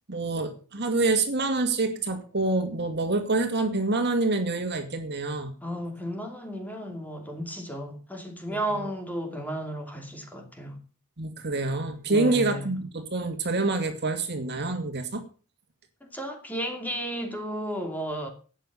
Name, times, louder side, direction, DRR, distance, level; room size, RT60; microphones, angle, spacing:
voice 1, 0.1-5.5 8.8-8.9 11.2-15.2, right 3 dB, 55° right, 2.3 m, -27 dB
voice 2, 5.6-10.8 12.1-12.8 16.0-18.3, right 1 dB, 10° left, 2.8 m, -33 dB
12.5 x 9.0 x 6.9 m
head